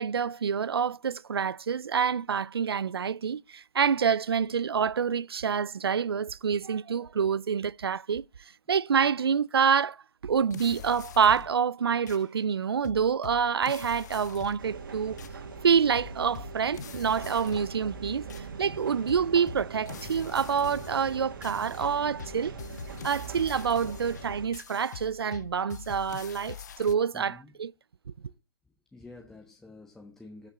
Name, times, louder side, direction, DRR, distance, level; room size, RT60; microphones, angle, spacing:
voice 1, 0.0-10.0 10.2-15.2 15.6-18.3 18.6-22.5 23.0-27.7, right 7 dB, 75° right, 0.5 m, -27 dB
sound 1, 10.3-11.6 12.1-12.2 12.8-14.7 15.2-15.4 16.0-17.9 18.3-18.5 19.1-27.0, left 8 dB, 45° left, 0.5 m, -44 dB
sound 2, 14.6-24.5, right 5 dB, 55° right, 2.3 m, -42 dB
voice 2, 27.1-27.5 28.3-28.4 28.9-30.5, left 2 dB, 5° left, 1.0 m, -49 dB
14.5 x 5.8 x 3.8 m
hypercardioid pair, 150°, 13 cm